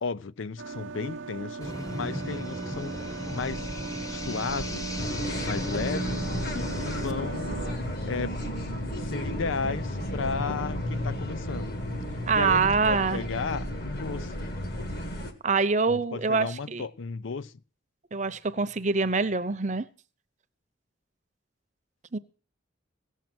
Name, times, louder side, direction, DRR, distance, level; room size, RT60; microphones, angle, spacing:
voice 1, 0.0-3.1 3.3-3.7 4.1-5.0 5.4-6.3 6.5-7.8 8.0-8.4 9.0-11.7 12.3-14.4 15.9-17.5, left 4 dB, 80° left, 0.5 m, -34 dB
sound 1, 0.6-7.7, right 4 dB, 85° right, 0.7 m, -38 dB
sound 2, 1.6-7.1, equal, 15° left, 0.9 m, -36 dB
sound 3, 5.0-15.3, left 1 dB, 50° left, 1.7 m, -33 dB
voice 2, 12.3-13.2 15.4-16.8 18.1-19.8 22.1-22.2, right 4 dB, 35° right, 0.7 m, -25 dB
17.0 x 7.4 x 6.0 m
head